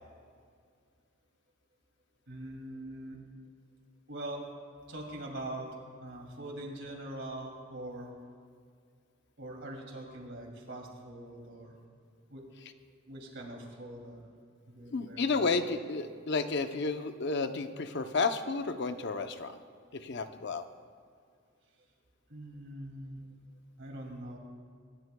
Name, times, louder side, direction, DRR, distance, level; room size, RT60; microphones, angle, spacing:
voice 1, 2.3-3.2 4.1-4.4 4.9-5.7 6.0-8.1 9.4-11.8 12.3-12.4 13.1-14.3 14.7-15.6 22.3-23.2 23.8-24.4, right 1 dB, 60° right, 1 dB, 2.6 m, -43 dB
voice 2, 14.9-19.6 19.9-20.7, left 4 dB, 60° left, 8 dB, 0.7 m, -32 dB
26.0 x 12.5 x 2.3 m, 2.2 s
head